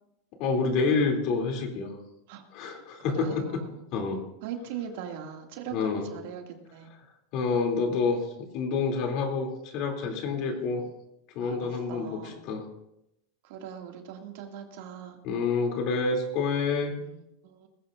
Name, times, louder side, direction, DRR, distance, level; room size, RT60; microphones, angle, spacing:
voice 1, 0.4-2.0 2.5-3.4 3.9-4.2 5.7-6.0 7.3-8.2 8.5-10.8 11.3-12.1 12.4-12.6 15.2-16.9, left 4 dB, 50° left, 3 dB, 2.9 m, -27 dB
voice 2, 3.1-3.8 4.4-6.9 10.4-10.9 11.4-12.4 13.4-15.2 17.0-17.7, right 8 dB, 65° right, 3 dB, 2.3 m, -41 dB
19.5 x 16.0 x 2.6 m, 0.83 s
supercardioid pair, 140°, 0 cm